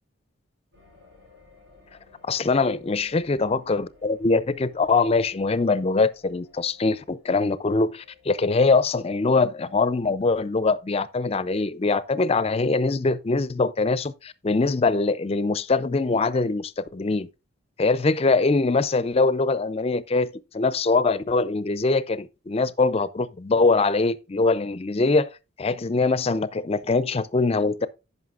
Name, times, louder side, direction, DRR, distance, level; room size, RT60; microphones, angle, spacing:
sound 1, 0.7-8.3, left 4 dB, 65° right, 6.1 m, -55 dB
voice 1, 2.3-17.3 17.8-25.3 25.6-27.9, left 3 dB, 30° left, 0.4 m, -23 dB
15.5 x 5.5 x 2.4 m
head